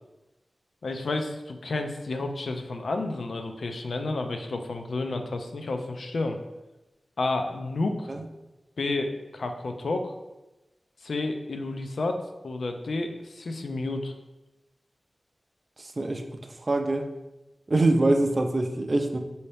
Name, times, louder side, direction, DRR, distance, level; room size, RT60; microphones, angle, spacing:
voice 1, 0.8-6.4 7.2-8.1 8.8-10.1 11.0-12.2 12.4-14.1, left 2 dB, 90° left, 5 dB, 0.4 m, -30 dB
voice 2, 16.7-17.1 17.7-19.2, right 2 dB, 45° right, 5 dB, 0.4 m, -23 dB
5.4 x 2.7 x 3.3 m, 1.0 s
wide cardioid pair, 85°, 0 cm